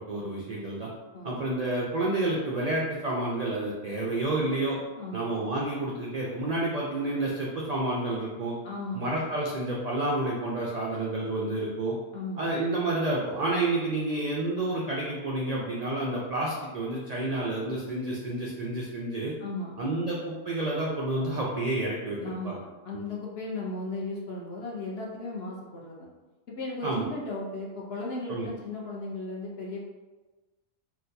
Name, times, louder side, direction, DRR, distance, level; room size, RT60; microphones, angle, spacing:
voice 1, 0.1-0.9 1.2-4.8 5.1-8.5 8.9-12.0 12.4-19.3 19.8-22.6 26.8-27.1 28.3-28.5, right 2 dB, 65° right, -4 dB, 0.4 m, -29 dB
voice 2, 1.1-1.4 5.0-5.3 8.6-9.2 12.1-12.5 19.4-19.8 22.2-26.1 26.6-29.8, left 2 dB, 55° left, -3 dB, 0.9 m, -36 dB
4.0 x 2.3 x 2.6 m, 1.2 s
omnidirectional pair, 1.3 m